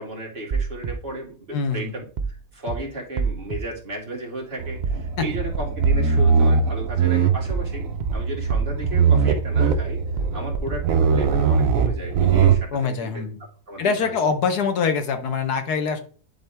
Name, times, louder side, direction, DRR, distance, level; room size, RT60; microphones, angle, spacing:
voice 1, 0.0-10.0 10.3-13.2 13.7-14.1, right 1 dB, 35° right, -3 dB, 2.4 m, -34 dB
sound 1, 0.5-0.9 2.2-2.4 2.7-2.8 3.2-3.6 4.8-5.0 5.3-5.4 5.8-6.3 7.5-7.7 8.0-8.1 8.5-8.9 10.2-10.4 10.7-10.8, right 5 dB, 85° right, 0.4 m, -26 dB
voice 2, 1.5-1.9 5.2-5.3 12.7-13.4 13.8-16.0, left 5 dB, 85° left, 7 dB, 1.5 m, -24 dB
sound 2, 4.6-12.6, right 6 dB, 65° right, 1.1 m, -21 dB
10.5 x 4.1 x 3.4 m, 0.41 s
omnidirectional pair, 1.6 m